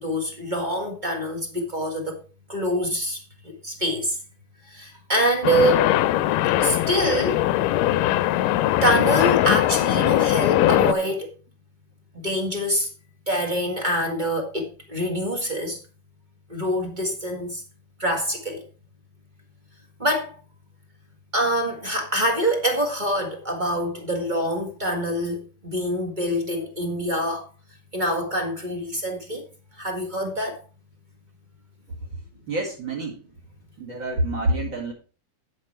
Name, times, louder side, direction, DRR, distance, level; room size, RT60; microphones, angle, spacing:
voice 1, 0.0-2.2 2.5-4.2 4.7-5.9 6.6-7.4 8.8-11.3 12.2-12.9 13.3-15.8 16.5-17.6 18.0-18.6 20.0-20.4 21.3-27.4 27.9-29.4 29.8-30.6, equal, 25° right, 1.0 m, -25 dB
sound 1, 5.4-10.9, left 14 dB, 90° left, 2.3 m, -21 dB
voice 2, 32.5-33.2 33.8-34.9, right 1 dB, 40° right, 2.4 m, -27 dB
9.4 x 7.6 x 4.4 m
omnidirectional pair, 3.7 m